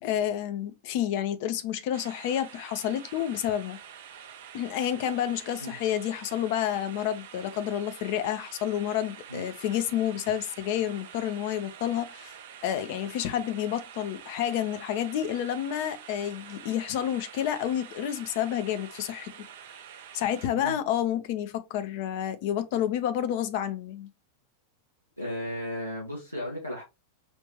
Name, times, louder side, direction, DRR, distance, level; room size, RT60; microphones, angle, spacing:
voice 1, 0.0-3.8 4.5-12.4 12.6-19.3 20.1-24.1, left 10 dB, 50° left, 0.6 m, -29 dB
sound 1, 1.9-20.5, right 8 dB, 55° right, 0.5 m, -47 dB
voice 2, 25.2-26.8, equal, 90° left, 1.0 m, -35 dB
5.1 x 2.5 x 3.1 m
figure-of-eight pair, 90°, 0 cm